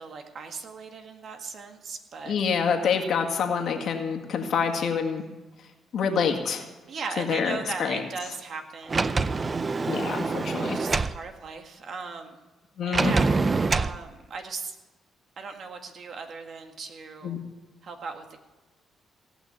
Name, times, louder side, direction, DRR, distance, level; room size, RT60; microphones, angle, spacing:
voice 1, 0.0-2.4 6.9-9.4 10.7-12.5 12.9-13.5 13.7-14.8 15.4-17.4 17.8-18.4, right 4 dB, 55° right, 4 dB, 1.8 m, -38 dB
voice 2, 2.3-5.2 5.9-6.7 7.2-8.0 9.8-10.8 12.8-13.1 17.2-17.4, left 6 dB, 65° left, 3 dB, 1.9 m, -27 dB
Sliding door, 8.9-11.2 12.9-14.0, right 4 dB, 30° right, 0.5 m, -25 dB
18.0 x 6.0 x 9.5 m, 1.2 s
cardioid pair, 90°, 0 cm